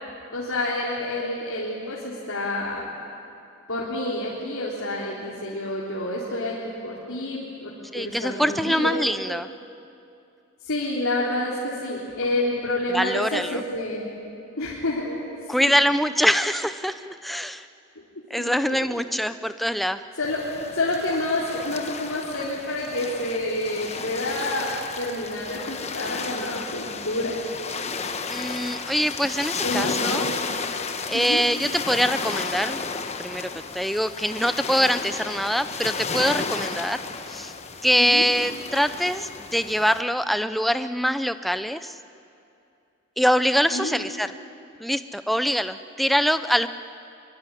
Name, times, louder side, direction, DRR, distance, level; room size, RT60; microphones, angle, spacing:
voice 1, 0.3-2.8 3.7-9.0 10.6-14.0 14.6-15.2 15.5-15.6 18.4-18.9 20.2-20.4 20.7-27.3 29.6-30.3 31.1-31.4 38.0-38.3 43.7-44.0, left 1 dB, 80° left, -6 dB, 3.7 m, -28 dB
voice 2, 7.9-9.5 12.9-13.6 15.5-17.6 18.3-20.0 28.3-30.3 31.1-32.8 33.2-37.0 37.3-37.5 37.8-41.9 43.2-44.3 44.8-46.7, equal, ahead, 11 dB, 0.6 m, -24 dB
sound 1, 20.2-40.0, left 4 dB, 30° left, 1.2 m, -33 dB
23.0 x 23.0 x 9.9 m, 2.7 s
head